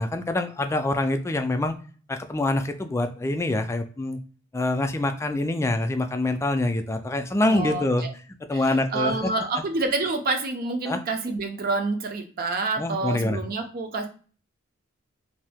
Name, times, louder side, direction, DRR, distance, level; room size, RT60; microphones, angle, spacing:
voice 1, 0.0-1.8 2.1-4.2 4.5-8.1 8.5-9.1 10.9-11.0 12.8-13.4, left 2 dB, 15° left, 7 dB, 0.3 m, -25 dB
voice 2, 7.5-8.1 8.5-14.1, right 3 dB, 45° right, 5 dB, 0.6 m, -28 dB
2.7 x 2.4 x 3.5 m, 0.40 s
head